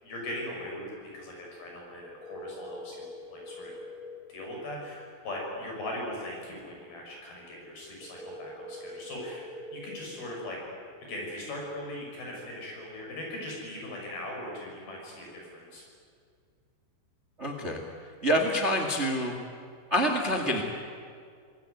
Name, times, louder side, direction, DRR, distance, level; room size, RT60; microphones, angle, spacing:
voice 1, 0.0-0.8 1.1-3.1 3.3-3.7 4.3-10.6 11.0-15.8, left 1 dB, 50° left, -1 dB, 8.0 m, -39 dB
sound 1, 2.0-4.0 8.0-10.0, left 1 dB, 25° right, 8.6 m, -43 dB
voice 2, 17.4-17.8 18.2-19.3 19.9-20.6, equal, 50° right, 3 dB, 0.8 m, -26 dB
27.5 x 19.5 x 9.4 m, 2.2 s
omnidirectional pair, 5.6 m